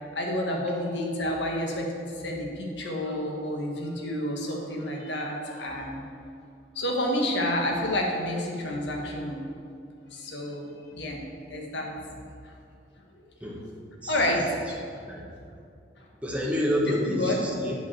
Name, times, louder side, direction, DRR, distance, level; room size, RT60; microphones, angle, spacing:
voice 1, 0.1-6.0 6.7-9.4 10.1-11.2 11.5-11.9 12.4-12.5 14.1-15.0 17.0-17.4, left 1 dB, 75° left, 0 dB, 1.5 m, -29 dB
voice 2, 16.2-17.7, equal, 10° right, -3 dB, 1.3 m, -28 dB
7.9 x 5.0 x 7.3 m, 2.4 s
head